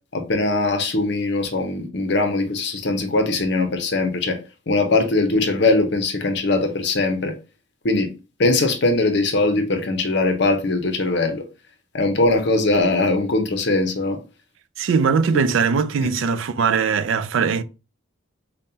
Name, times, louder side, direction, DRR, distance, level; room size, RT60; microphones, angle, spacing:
voice 1, 0.1-4.4 4.7-7.4 7.8-8.1 8.4-11.4 11.9-14.2 16.0-16.1, left 2 dB, 55° left, 0.7 m, -21 dB
voice 2, 14.8-17.6, right 5 dB, 70° right, 0.4 m, -20 dB
5.2 x 2.2 x 2.7 m
head